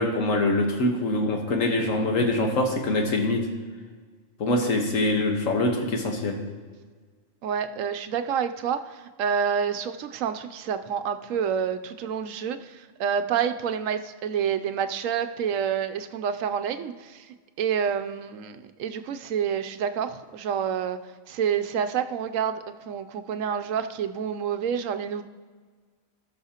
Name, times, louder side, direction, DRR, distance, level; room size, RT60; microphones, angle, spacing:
voice 1, 0.0-3.5 4.4-6.4, left 2 dB, 75° left, 2 dB, 1.6 m, -24 dB
voice 2, 7.4-17.3 17.6-21.0 21.3-25.2, right 7 dB, 80° right, 9 dB, 1.0 m, -28 dB
18.5 x 6.3 x 2.9 m, 1.5 s
omnidirectional pair, 1.4 m